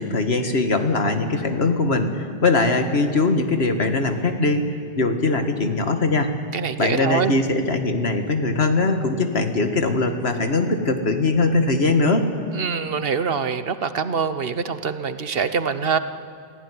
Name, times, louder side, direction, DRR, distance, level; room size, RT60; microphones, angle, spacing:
voice 1, 0.0-6.3 6.8-12.3, left 3 dB, 75° left, 6 dB, 2.0 m, -21 dB
voice 2, 6.5-7.4 12.5-16.0, right 5 dB, 65° right, 11 dB, 1.2 m, -24 dB
24.5 x 15.5 x 9.8 m, 2.3 s
omnidirectional pair, 1.1 m